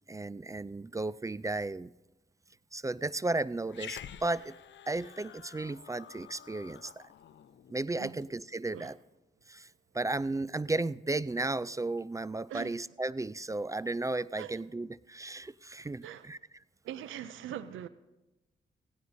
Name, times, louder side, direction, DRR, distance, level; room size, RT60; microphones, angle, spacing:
voice 1, 0.1-1.9 2.7-4.6 4.9-7.1 7.7-9.0 9.5-9.7 9.9-16.4, right 2 dB, 15° right, 19 dB, 0.3 m, -34 dB
Growling, 3.7-8.3, left 9 dB, 70° left, 0.6 m, -49 dB
voice 2, 16.8-17.9, right 10 dB, 90° right, 15 dB, 0.5 m, -41 dB
17.0 x 16.0 x 2.7 m, 1.0 s
supercardioid pair, 50°, 20 cm